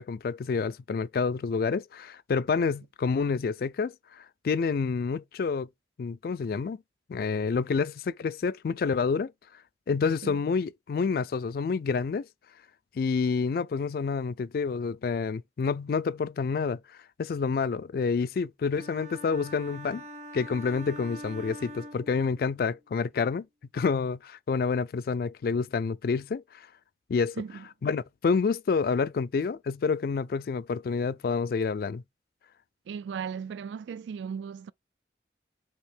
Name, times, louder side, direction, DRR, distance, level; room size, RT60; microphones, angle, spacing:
voice 1, 0.0-5.7 6.0-6.8 7.1-9.3 9.9-12.3 13.0-16.8 17.2-20.0 20.3-23.5 23.7-26.4 27.1-27.4 27.8-32.0, left 5 dB, 55° left, 0.3 m, -28 dB
sound 1, 18.7-22.6, right 1 dB, 40° right, 0.9 m, -44 dB
voice 2, 32.9-34.7, right 6 dB, 85° right, 0.3 m, -36 dB
5.4 x 2.8 x 3.4 m
head